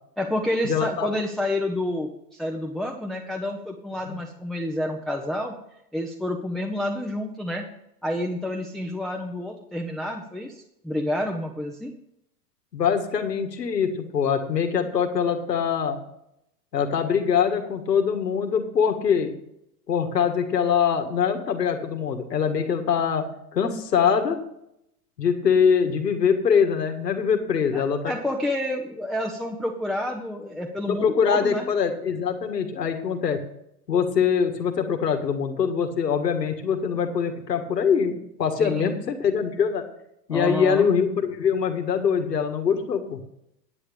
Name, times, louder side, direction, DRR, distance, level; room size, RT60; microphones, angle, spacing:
voice 1, 0.2-5.5 5.9-7.6 8.0-11.9 27.7-31.7 38.6-39.0 40.3-40.9, left 1 dB, ahead, 1 dB, 0.6 m, -29 dB
voice 2, 0.7-1.1 4.1-4.2 12.7-16.0 16.7-19.3 19.9-23.2 23.5-24.4 25.2-28.1 30.9-33.4 33.9-39.8 40.3-43.2, left 7 dB, 90° left, 6 dB, 1.8 m, -23 dB
9.9 x 8.6 x 5.2 m, 0.78 s
hypercardioid pair, 115°, 47 cm